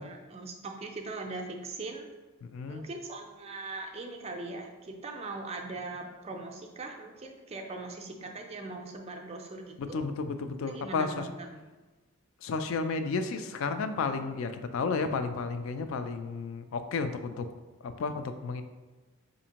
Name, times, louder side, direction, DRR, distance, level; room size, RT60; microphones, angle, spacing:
voice 1, 0.0-2.1 2.7-10.0 10.6-11.6, right 3 dB, 30° right, 2 dB, 0.4 m, -40 dB
voice 2, 2.4-2.8 9.8-11.2 12.4-17.5 17.8-18.6, left 4 dB, 65° left, 9 dB, 0.3 m, -32 dB
4.9 x 2.6 x 2.8 m, 1.2 s
head